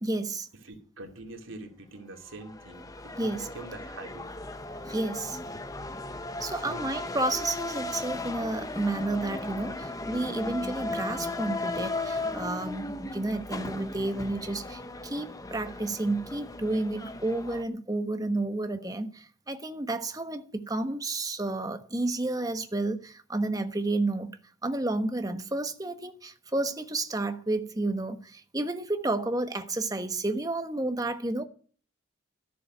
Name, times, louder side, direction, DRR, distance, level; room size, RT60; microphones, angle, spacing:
voice 1, 0.0-0.5 3.2-3.5 4.9-5.4 6.4-24.3 24.6-31.4, right 2 dB, 20° right, 1.2 m, -31 dB
voice 2, 0.6-4.3 6.5-6.9, right 2 dB, 80° right, 2.6 m, -44 dB
sound 1, 2.3-17.6, left 2 dB, 15° left, 0.9 m, -36 dB
13.5 x 7.1 x 9.0 m
head